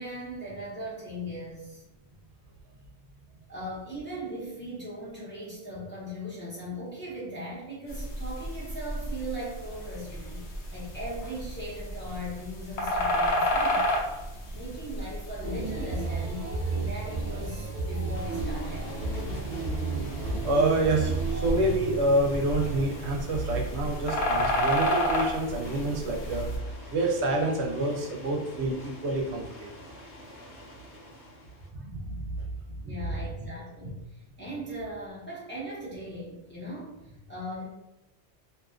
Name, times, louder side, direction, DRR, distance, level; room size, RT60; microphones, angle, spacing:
voice 1, 0.0-1.8 3.5-10.4 10.7-14.1 14.5-16.5 16.9-18.9 32.8-37.0 37.3-37.7, equal, 15° left, -8 dB, 0.6 m, -39 dB
sound 1, 7.9-26.6, equal, 90° left, 0.9 m, -32 dB
sound 2, 15.4-21.5, right 3 dB, 60° right, 0.5 m, -32 dB
sound 3, 18.1-31.7, equal, 65° left, 1.0 m, -47 dB
voice 2, 20.4-26.5 26.9-29.7 31.7-32.5, right 2 dB, 80° right, 1 dB, 0.8 m, -27 dB
2.5 x 2.3 x 2.4 m, 0.90 s
omnidirectional pair, 1.1 m